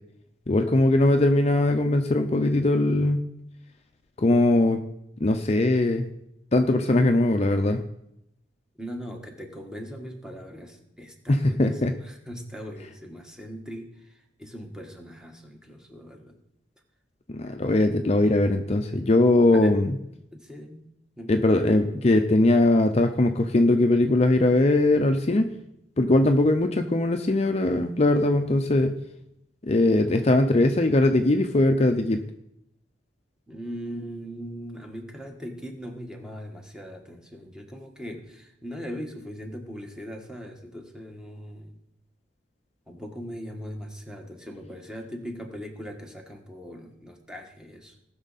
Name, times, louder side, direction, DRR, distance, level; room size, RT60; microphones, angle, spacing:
voice 1, 0.5-3.2 4.2-4.8 5.2-6.1 6.5-7.8 11.3-11.9 17.3-19.9 21.3-25.5 26.0-29.0 29.6-32.2, left 2 dB, 35° left, 6 dB, 0.6 m, -20 dB
voice 2, 8.8-16.4 19.5-19.8 20.3-20.9 21.2-21.4 33.5-41.8 42.9-47.9, equal, 5° right, 2 dB, 1.4 m, -40 dB
18.0 x 6.3 x 4.1 m, 0.79 s
head